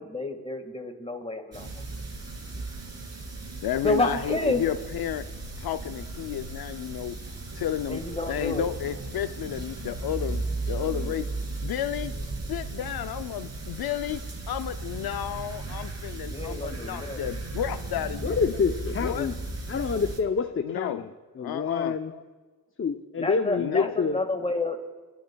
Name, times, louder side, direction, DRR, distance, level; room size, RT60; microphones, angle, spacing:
voice 1, 0.0-1.7 3.8-4.7 7.9-8.7 10.7-11.3 12.1-12.2 16.3-17.4 23.2-24.8, left 2 dB, 15° left, 6 dB, 1.7 m, -30 dB
sound 1, 1.5-20.2, right 3 dB, 45° right, 2.4 m, -36 dB
voice 2, 3.6-5.3 5.6-7.2 7.5-8.0 8.3-10.4 10.7-11.3 11.6-12.1 12.5-14.2 14.5-18.5 19.0-19.3 20.6-21.0 21.4-21.9 23.6-23.9, left 11 dB, 75° left, 10 dB, 0.5 m, -32 dB
voice 3, 18.2-19.4 19.7-22.2 22.8-24.2, left 5 dB, 35° left, 7 dB, 0.6 m, -27 dB
28.0 x 10.5 x 2.3 m, 1.4 s
cardioid pair, 55°, 37 cm